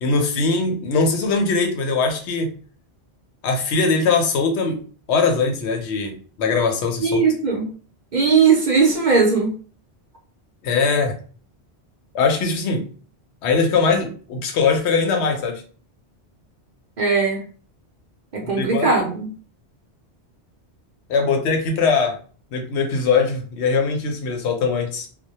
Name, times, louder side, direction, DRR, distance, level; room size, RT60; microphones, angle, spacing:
voice 1, 0.0-2.5 3.4-4.8 5.1-7.2 10.6-11.1 12.1-12.8 13.4-15.6 18.4-18.9 21.1-22.2 22.5-25.1, left 4 dB, 85° left, 4 dB, 0.9 m, -21 dB
voice 2, 7.0-7.7 8.1-9.5 17.0-17.4 18.3-19.3, right 5 dB, 50° right, 0 dB, 0.6 m, -18 dB
2.1 x 2.1 x 2.8 m, 0.41 s
omnidirectional pair, 1.1 m